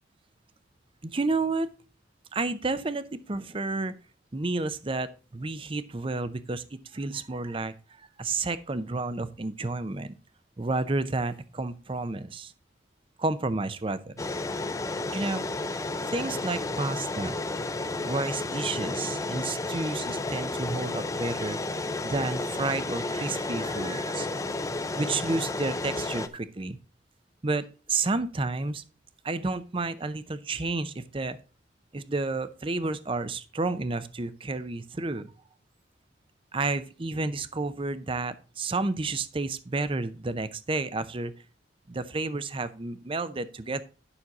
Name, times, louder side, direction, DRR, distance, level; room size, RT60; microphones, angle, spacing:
voice 1, 1.0-1.7 2.3-4.0 4.3-10.2 10.6-12.5 13.2-14.1 15.1-15.4 16.1-21.6 22.0-24.3 25.0-26.8 27.4-28.8 29.2-31.4 31.9-35.3 36.5-41.3 41.9-43.8, right 3 dB, 30° right, 14 dB, 0.6 m, -31 dB
sound 1, 14.2-26.3, left 2 dB, 15° left, 0.5 m, -32 dB
9.9 x 6.2 x 3.9 m, 0.34 s
head